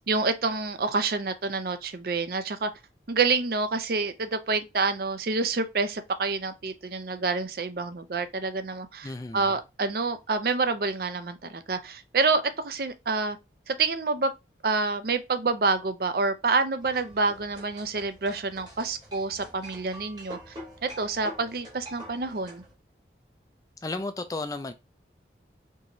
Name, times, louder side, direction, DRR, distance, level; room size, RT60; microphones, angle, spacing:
voice 1, 0.1-2.7 3.1-13.4 13.7-14.3 14.6-20.6 20.8-22.6, right 4 dB, 55° right, 0.5 m, -28 dB
voice 2, 9.0-9.5 23.8-24.7, left 2 dB, 20° left, 0.4 m, -33 dB
sound 1, 16.8-22.7, equal, 25° right, 1.3 m, -46 dB
4.6 x 3.0 x 2.7 m
head